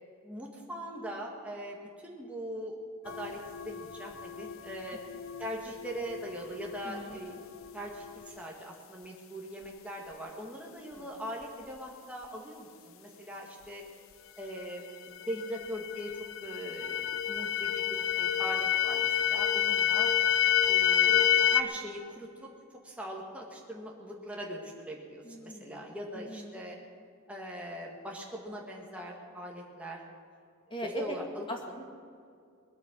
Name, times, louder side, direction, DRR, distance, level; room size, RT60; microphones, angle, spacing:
voice 1, 0.2-2.8 3.0-5.0 5.4-7.4 7.7-13.8 14.4-16.1 16.4-20.1 20.7-22.3 22.8-26.8 27.3-30.0 30.8-31.4, equal, 5° right, -2 dB, 1.8 m, -41 dB
sound 1, 3.1-8.4 14.6-14.7 15.1-21.6, left 10 dB, 70° left, 0.6 m, -29 dB
voice 2, 6.8-7.2 10.9-11.1 25.2-25.8 26.1-26.6 30.7-31.2 31.5-31.8, equal, 25° left, 2 dB, 1.9 m, -40 dB
20.5 x 8.7 x 7.6 m, 2.3 s
head